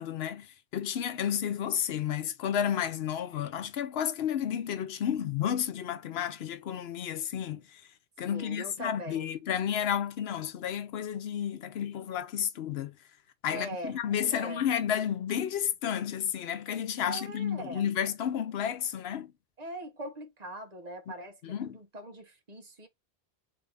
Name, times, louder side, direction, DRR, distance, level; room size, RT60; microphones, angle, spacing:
voice 1, 0.0-7.8 8.2-13.0 13.4-19.3 21.4-21.8, left 9 dB, 85° left, 0.9 m, -31 dB
voice 2, 8.3-9.3 13.5-14.0 14.3-14.6 17.0-17.8 19.6-21.4 21.7-22.9, right 1 dB, 40° right, 1.0 m, -41 dB
4.5 x 2.6 x 3.3 m
omnidirectional pair, 1.0 m